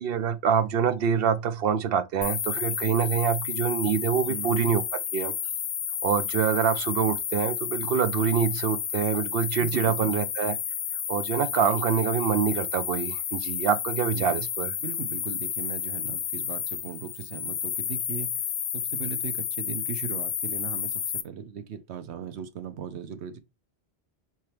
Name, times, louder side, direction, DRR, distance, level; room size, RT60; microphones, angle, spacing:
voice 1, 0.0-4.8 5.1-5.3 6.0-10.6 11.1-14.7, right 7 dB, 65° right, 0.8 m, -25 dB
sound 1, 2.2-21.2, left 9 dB, 80° left, 0.9 m, -31 dB
voice 2, 4.3-4.7 9.6-10.1 14.1-14.5 14.8-18.3 18.7-23.4, right 7 dB, 90° right, 1.0 m, -38 dB
4.5 x 3.7 x 3.2 m
omnidirectional pair, 1.1 m